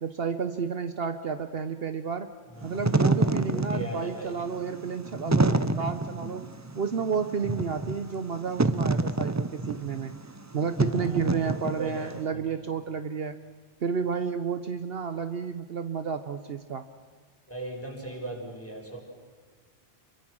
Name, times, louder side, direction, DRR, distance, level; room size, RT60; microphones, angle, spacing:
voice 1, 0.0-2.3 2.6-6.5 6.7-10.1 10.5-13.4 13.8-16.9, right 6 dB, 60° right, 9 dB, 1.1 m, -31 dB
Wind / Fire, 2.6-12.1, right 2 dB, 20° right, 0.6 m, -27 dB
voice 2, 3.2-4.3 10.9-12.2 17.5-19.0, right 2 dB, 10° left, -1 dB, 5.3 m, -38 dB
27.5 x 23.5 x 6.3 m, 1.4 s
omnidirectional pair, 1.2 m